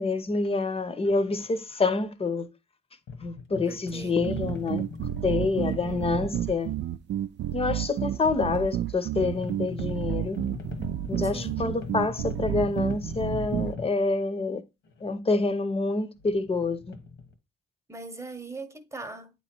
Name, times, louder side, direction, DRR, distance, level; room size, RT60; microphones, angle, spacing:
voice 1, 0.0-2.5 3.2-4.8 5.2-6.7 7.5-10.4 11.1-14.6 15.0-16.9, left 3 dB, 30° left, 0.8 m, -27 dB
sound 1, 3.1-6.7 9.2-13.9 14.9-15.1 16.2-17.3, left 4 dB, 75° left, 1.3 m, -40 dB
voice 2, 3.7-4.2 5.5-6.2 11.2-11.7 17.9-19.3, right 3 dB, 15° right, 1.0 m, -41 dB
sound 2, 4.2-13.7, right 12 dB, 65° right, 0.4 m, -31 dB
8.6 x 3.1 x 4.3 m
cardioid pair, 90°, 20 cm